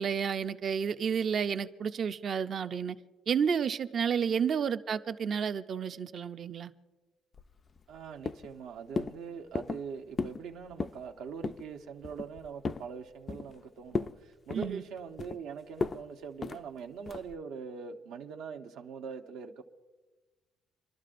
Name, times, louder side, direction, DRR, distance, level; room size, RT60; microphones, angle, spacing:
voice 1, 0.0-3.0 3.3-6.7 14.5-14.8, right 7 dB, 35° right, 0.4 m, -31 dB
voice 2, 4.1-4.4 7.9-19.6, right 6 dB, 70° right, 0.8 m, -43 dB
sound 1, 7.3-8.0 8.3-8.6 9.0-9.2 9.6-9.9 10.2-10.4 10.7-11.0 11.4-11.7 12.0-12.9 13.3-13.6 13.9-14.2 14.5-15.4 15.8-16.0 16.4-16.6 17.1-17.4, left 4 dB, 25° left, 0.3 m, -35 dB
28.0 x 12.0 x 2.5 m
cardioid pair, 165°, 0 cm